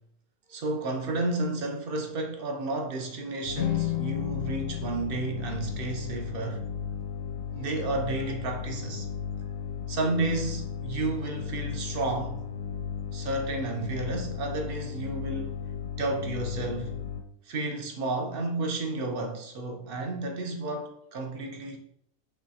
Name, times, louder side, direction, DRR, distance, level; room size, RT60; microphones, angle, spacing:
voice 1, 0.5-6.6 7.5-9.1 9.9-12.4 13.1-15.5 16.0-16.9 17.5-21.8, right 2 dB, 55° right, 0.7 m, -32 dB
sound 1, 3.4-17.2, left 7 dB, 60° left, 0.7 m, -35 dB
sound 2, 3.5-6.8, left 13 dB, 85° left, 1.0 m, -34 dB
5.3 x 3.2 x 2.7 m
omnidirectional pair, 1.4 m